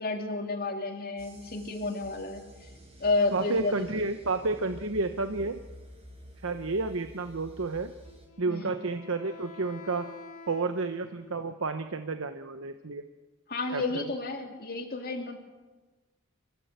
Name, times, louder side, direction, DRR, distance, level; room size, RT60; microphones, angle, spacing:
voice 1, 0.0-2.4 3.0-3.8 8.5-8.7 13.5-15.4, left 3 dB, 45° left, 3 dB, 2.8 m, -31 dB
sound 1, 1.2-8.3, equal, 30° right, 6.2 m, -50 dB
voice 2, 3.3-5.6 6.4-7.9 8.4-10.1 10.5-13.0 13.7-14.0, right 3 dB, 65° right, 8 dB, 0.9 m, -31 dB
Wind instrument woodwind instrument, 8.0-11.6, left 3 dB, 85° left, 2.8 m, -48 dB
26.5 x 15.0 x 8.1 m, 1.3 s
head